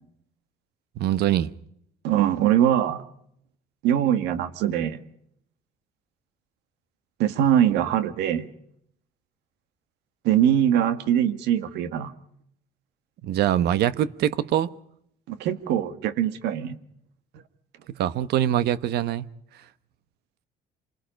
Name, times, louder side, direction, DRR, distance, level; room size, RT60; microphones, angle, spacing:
voice 1, 1.0-1.5 13.2-14.7 17.9-19.2, right 11 dB, 75° right, 1.1 m, -23 dB
voice 2, 2.0-3.0 3.8-5.0 7.2-8.5 10.2-12.1 15.3-16.8, right 10 dB, 90° right, 1.8 m, -22 dB
27.0 x 20.5 x 5.2 m
cardioid pair, 110°, 17 cm